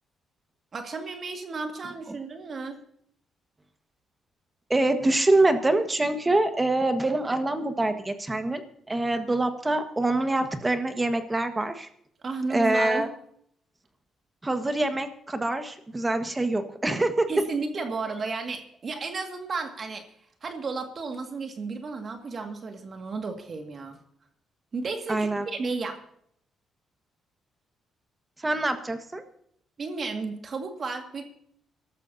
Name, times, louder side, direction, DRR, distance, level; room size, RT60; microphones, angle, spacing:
voice 1, 0.7-2.8 12.2-13.1 17.3-20.1 20.4-24.0 24.7-26.0 29.8-31.3, right 4 dB, 45° right, 4 dB, 2.1 m, -33 dB
voice 2, 4.7-8.6 8.9-11.9 12.5-13.1 14.4-17.3 25.1-25.5 28.4-29.2, right 2 dB, 20° right, 7 dB, 1.6 m, -25 dB
24.5 x 13.0 x 2.8 m, 0.69 s
cardioid pair, 90°, 0 cm